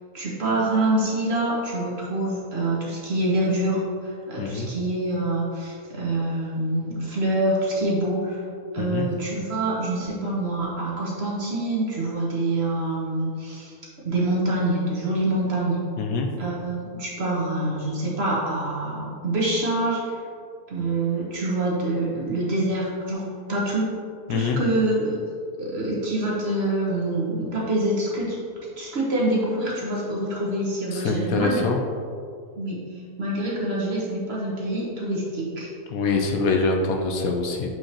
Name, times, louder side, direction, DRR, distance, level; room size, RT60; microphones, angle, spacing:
voice 1, 0.1-8.5 8.7-13.7 14.0-15.8 16.4-20.2 20.7-23.8 24.3-25.2 25.6-28.4 28.8-31.6 32.6-35.7, right 1 dB, 45° right, -5 dB, 1.3 m, -26 dB
voice 2, 4.4-4.7 8.8-9.1 16.0-16.3 24.3-24.6 30.9-31.8 35.9-37.7, left 4 dB, 75° left, 3 dB, 1.0 m, -24 dB
7.5 x 4.6 x 2.9 m, 2.3 s
omnidirectional pair, 1.6 m